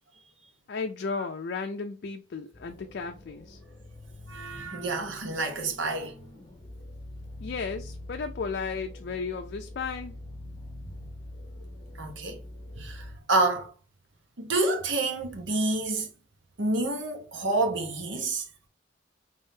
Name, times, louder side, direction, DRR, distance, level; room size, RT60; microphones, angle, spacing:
voice 1, 0.7-3.6 7.4-10.2, left 5 dB, 55° left, 0.4 m, -34 dB
sound 1, 2.5-13.2, left 1 dB, 30° left, 0.8 m, -44 dB
voice 2, 4.3-6.1 12.0-12.4 12.8-13.7 14.4-16.1 16.6-18.4, right 2 dB, 75° right, 1.0 m, -28 dB
3.6 x 3.5 x 2.7 m
head